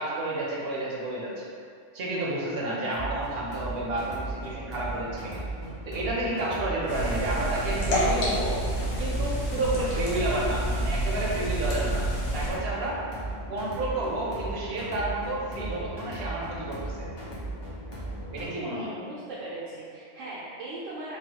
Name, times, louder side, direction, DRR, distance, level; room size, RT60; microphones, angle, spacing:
voice 1, 0.0-1.5 1.9-5.4 5.8-8.6 9.0-12.1 12.3-13.0 13.5-17.1 18.3-18.9, right 2 dB, 60° right, -4 dB, 0.8 m, -30 dB
sound 1, 2.9-18.5, right 1 dB, 35° left, 0.4 m, -37 dB
sound 2, 6.9-12.5, right 1 dB, 75° left, 1.0 m, -28 dB
voice 2, 18.7-21.2, right 1 dB, 85° right, -9 dB, 1.0 m, -38 dB
3.1 x 2.3 x 2.8 m, 2.4 s
omnidirectional pair, 1.3 m